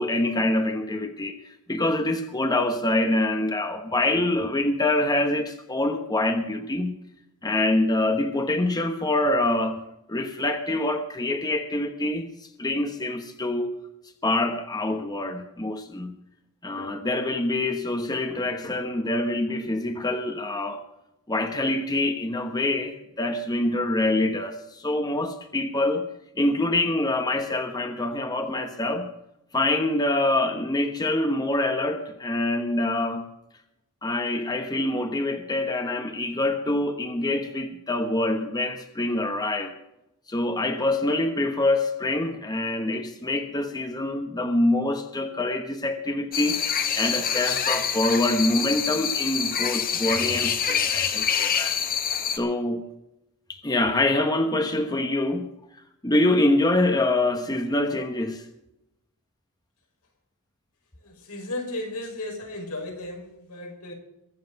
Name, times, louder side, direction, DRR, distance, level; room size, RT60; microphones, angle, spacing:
voice 1, 0.0-7.0 7.4-13.8 14.2-16.1 16.6-20.8 21.3-26.1 26.4-29.1 29.5-33.2 34.0-39.7 40.3-46.6 46.9-51.8 52.3-52.8 53.5-55.5 56.0-58.5, left 2 dB, 20° left, 6 dB, 1.1 m, -25 dB
sound 1, 46.3-52.4, left 7 dB, 40° left, 1.4 m, -26 dB
voice 2, 61.0-63.9, left 2 dB, 90° left, 1 dB, 5.6 m, -35 dB
22.5 x 7.9 x 5.3 m, 0.84 s
head